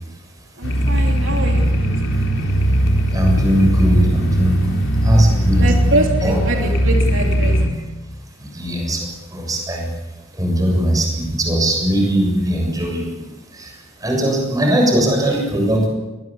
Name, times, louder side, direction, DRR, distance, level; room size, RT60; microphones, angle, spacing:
sound 1, 0.6-7.7, right 1 dB, 80° left, 3.8 m, -18 dB
voice 1, 0.6-2.2 5.3-7.6 14.2-14.7 15.3-15.4, right 2 dB, 75° right, 2 dB, 3.2 m, -25 dB
voice 2, 3.1-5.8 6.2-6.4 8.4-9.0 9.3-9.9 10.4-13.1 13.5-13.7 14.0-15.9, equal, 20° right, 1 dB, 7.2 m, -19 dB
22.5 x 20.0 x 8.5 m, 1.1 s
head